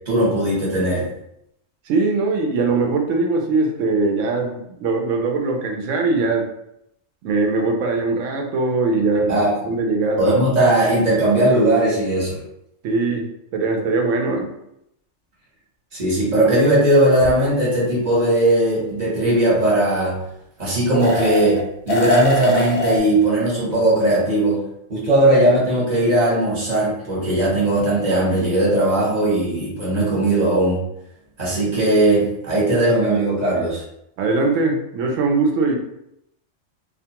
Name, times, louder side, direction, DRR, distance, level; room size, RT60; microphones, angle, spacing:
voice 1, 0.1-1.1 9.3-9.6 10.2-12.4 15.9-20.2 20.6-24.6 24.9-30.8 31.4-33.8, right 1 dB, 35° right, -6 dB, 1.0 m, -18 dB
voice 2, 1.9-6.5 7.2-9.4 9.7-10.3 12.8-14.5 34.2-35.8, right 3 dB, 75° right, 3 dB, 0.9 m, -21 dB
sound 1, 17.2-17.3 20.9-21.6 21.9-23.0, left 1 dB, 65° left, 0.8 m, -22 dB
2.4 x 2.3 x 2.8 m, 0.79 s
omnidirectional pair, 1.3 m